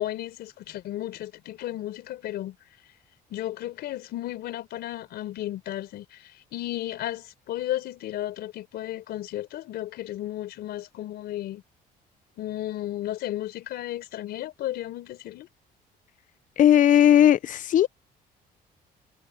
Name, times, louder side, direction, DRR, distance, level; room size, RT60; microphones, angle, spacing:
voice 1, 0.0-2.6 3.3-11.6 12.4-15.5, left 14 dB, 75° left, 4.4 m, -34 dB
voice 2, 16.6-17.9, left 10 dB, 50° left, 0.6 m, -17 dB
cardioid pair, 110°, 17 cm